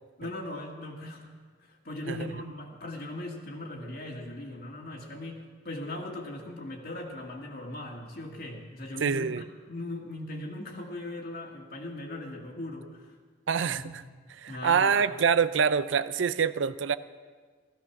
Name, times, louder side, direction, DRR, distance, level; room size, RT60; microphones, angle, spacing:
voice 1, 0.2-13.2 13.7-13.9 14.5-15.0, left 1 dB, 50° left, -1 dB, 1.9 m, -39 dB
voice 2, 9.0-9.4 13.5-13.9 14.4-17.0, right 6 dB, 75° right, 14 dB, 0.5 m, -25 dB
16.0 x 14.5 x 5.9 m, 1.5 s
head